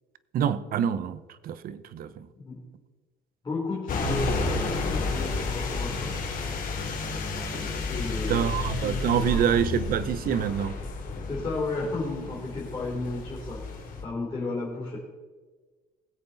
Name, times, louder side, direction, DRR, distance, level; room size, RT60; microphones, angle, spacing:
voice 1, 0.3-2.3 8.3-10.8, right 8 dB, 60° right, 0.7 m, -26 dB
voice 2, 3.4-6.2 7.9-8.5 8.8-9.7 11.3-13.7 14.0-15.0, left 3 dB, 25° left, 3.2 m, -33 dB
sound 1, 3.9-14.0, left 3 dB, 55° left, 3.1 m, -31 dB
19.5 x 8.0 x 4.0 m
cardioid pair, 110°, 17 cm